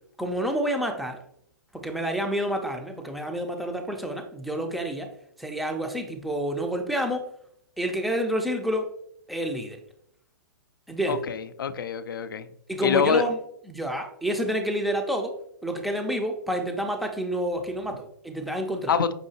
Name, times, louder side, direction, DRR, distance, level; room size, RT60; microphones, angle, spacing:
voice 1, 0.2-1.2 1.7-5.1 5.4-7.3 7.8-8.9 9.3-9.8 10.9-11.2 12.7-13.4 13.7-15.4 15.6-19.0, equal, ahead, 4 dB, 0.4 m, -29 dB
voice 2, 11.1-12.5 12.8-13.2 18.9-19.1, left 6 dB, 85° left, 12 dB, 0.4 m, -25 dB
5.5 x 2.7 x 2.8 m, 0.69 s
hypercardioid pair, 140°, 11 cm